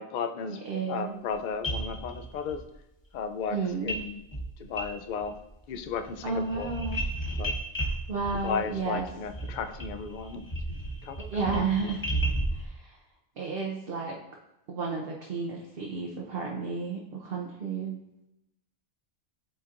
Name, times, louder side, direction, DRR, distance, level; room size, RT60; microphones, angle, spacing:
voice 1, 0.0-0.6 0.9-2.6 3.1-4.2 4.6-5.4 5.7-6.7 7.3-7.5 8.4-11.6, left 6 dB, 55° left, 9 dB, 0.5 m, -35 dB
voice 2, 0.6-1.2 3.5-3.9 6.2-7.0 8.1-9.0 11.2-12.0 12.5-13.0 13.4-14.2 14.7-18.0, right 4 dB, 55° right, -1 dB, 1.0 m, -32 dB
sound 1, 1.3-1.4 1.6-2.6 3.9-4.1 4.3-5.4 5.6-12.6, right 1 dB, 25° left, 1.4 m, -34 dB
12.0 x 4.3 x 2.5 m, 0.91 s
omnidirectional pair, 1.2 m